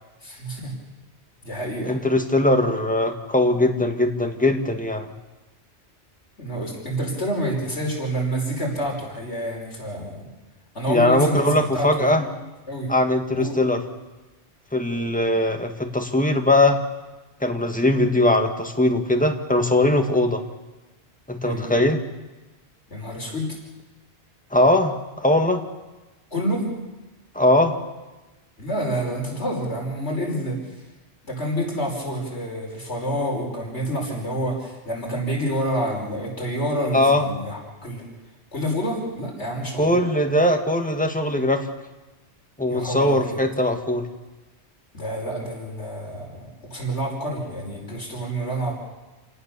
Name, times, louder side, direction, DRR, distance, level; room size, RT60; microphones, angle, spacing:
voice 1, 0.2-0.7 1.4-2.0 6.4-10.3 10.8-12.3 12.7-12.9 13.3-13.6 21.4-21.7 22.9-23.6 26.3-26.7 28.6-30.6 31.2-38.0 38.5-40.0 42.7-43.4 44.9-48.8, equal, 75° left, -1 dB, 5.5 m, -28 dB
voice 2, 1.9-5.1 10.9-12.2 12.9-13.8 14.7-16.8 17.4-20.4 21.3-22.0 24.5-25.6 27.4-27.8 36.9-37.3 39.8-41.7 42.6-44.1, left 1 dB, 5° left, 4 dB, 1.9 m, -20 dB
28.0 x 18.5 x 7.0 m, 1.1 s
omnidirectional pair, 1.2 m